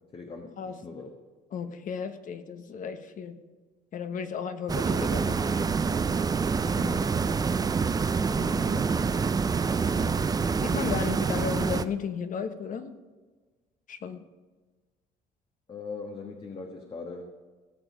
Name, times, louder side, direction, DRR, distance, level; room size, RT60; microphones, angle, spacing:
voice 1, 0.1-1.1 8.3-8.9 9.9-10.3 15.7-17.3, left 4 dB, 35° left, 2 dB, 1.3 m, -40 dB
voice 2, 1.5-3.4 3.9-5.4 6.6-7.0 10.6-12.9 13.9-14.2, left 6 dB, 50° left, 9 dB, 1.1 m, -34 dB
sound 1, 4.7-11.8, right 5 dB, 20° right, 0.5 m, -26 dB
18.0 x 7.0 x 5.1 m, 1.4 s
cardioid pair, 110°, 17 cm